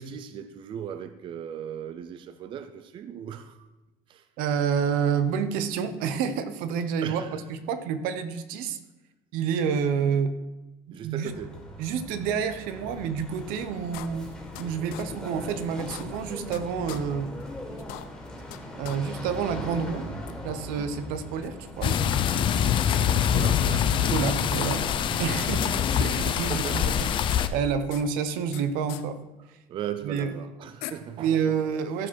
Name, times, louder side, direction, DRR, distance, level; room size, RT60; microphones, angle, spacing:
voice 1, 0.0-3.7 4.1-4.2 7.0-7.4 10.9-11.7 23.3-24.7 26.3-27.5 29.7-31.4, right 9 dB, 35° right, 0.5 m, -38 dB
voice 2, 4.4-8.8 9.3-10.3 11.0-11.3 11.8-14.3 14.6-17.4 18.8-20.1 20.4-22.0 24.1-24.9 25.2-25.7 26.0-26.8 27.5-29.2 29.5-29.6 30.0-30.3 31.2-32.1, right 7 dB, 80° right, 1.0 m, -28 dB
sound 1, 11.3-26.0, left 1 dB, 5° left, 2.2 m, -40 dB
sound 2, 13.9-14.6 14.9-15.0 15.4-15.5 15.8-16.6 16.9-17.0 17.4-17.5 17.8-18.6 18.8-19.0 19.3-19.4 20.3-20.4 21.4-22.6 22.9-23.0 23.3-23.4 23.6-24.7 24.9-25.1 25.4-26.0 26.3-27.0 27.3-28.6 28.9-29.0 30.2-30.3 30.8-30.9, left 15 dB, 90° left, 0.8 m, -41 dB
sound 3, 21.8-27.5, left 9 dB, 35° left, 0.6 m, -24 dB
14.0 x 5.1 x 6.4 m
cardioid pair, 170°, 14 cm